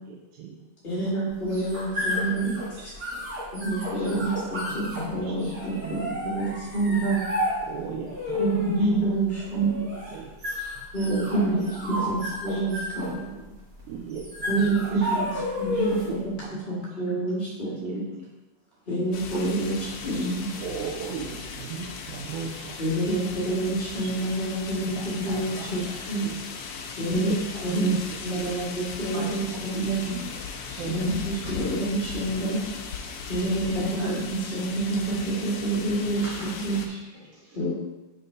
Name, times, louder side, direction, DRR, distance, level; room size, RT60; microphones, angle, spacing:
voice 1, 0.1-0.6 0.9-1.1 2.0-2.3 4.1-4.3 4.7-5.4 5.8-6.3 7.6-8.9 9.5-10.3 11.1-12.7 13.1-13.2 13.9-15.1 16.1-16.9 17.6-18.0 19.3-19.7 20.6-23.1 24.0-24.1 24.8-26.4 27.1-28.5 29.1-29.4 29.7-29.9 30.8-31.2 31.8-32.2 33.5-34.1 34.4-34.6, right 6 dB, 85° right, -1 dB, 2.1 m, -37 dB
voice 2, 0.8-2.5 3.5-7.2 8.4-9.9 10.9-13.4 14.5-16.2 16.7-18.0 18.9-19.8 20.0-20.5 22.8-25.8 26.1-26.3 27.0-27.3 27.6-27.9 28.2-30.2 30.8-32.6 33.3-36.3 36.6-36.8 37.5-37.7, right 2 dB, 35° left, -8 dB, 0.8 m, -27 dB
sound 1, 1.3-16.2, left 1 dB, 35° right, 1.5 m, -32 dB
voice 3, 1.4-3.2 3.9-4.1 4.4-4.5 5.1-5.5 10.6-10.7 14.6-14.7 15.7-16.1 19.6-20.6 29.8-30.0 30.3-30.9 35.4-35.5 36.1-37.6, right 1 dB, 65° right, -5 dB, 2.8 m, -47 dB
sound 2, 19.1-36.9, left 5 dB, 80° left, 1.3 m, -38 dB
5.2 x 4.1 x 5.4 m, 1.1 s
omnidirectional pair, 3.5 m